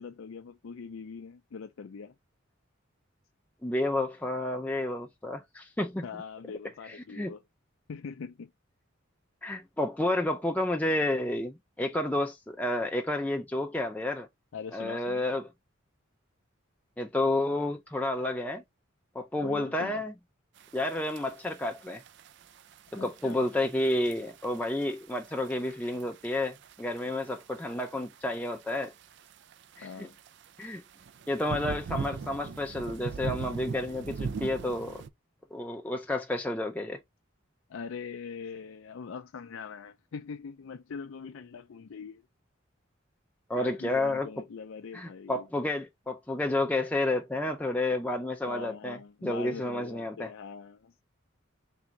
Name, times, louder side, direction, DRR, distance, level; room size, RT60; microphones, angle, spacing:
voice 1, 0.0-2.1 6.0-7.4 7.9-8.5 14.5-15.2 19.4-20.0 23.0-23.4 29.8-30.1 37.7-42.2 43.6-45.5 48.5-50.9, left 5 dB, 70° left, 0.4 m, -42 dB
voice 2, 3.6-6.1 6.8-7.3 9.4-14.3 14.7-15.5 17.0-18.6 19.1-20.1 20.7-22.0 22.9-28.9 29.8-30.1 30.6-30.8 31.3-35.0 35.5-37.0 43.5-44.3 44.9-50.3, left 1 dB, 10° left, 0.4 m, -30 dB
sound 1, 20.6-35.1, right 5 dB, 55° right, 0.4 m, -41 dB
3.7 x 3.4 x 2.8 m
head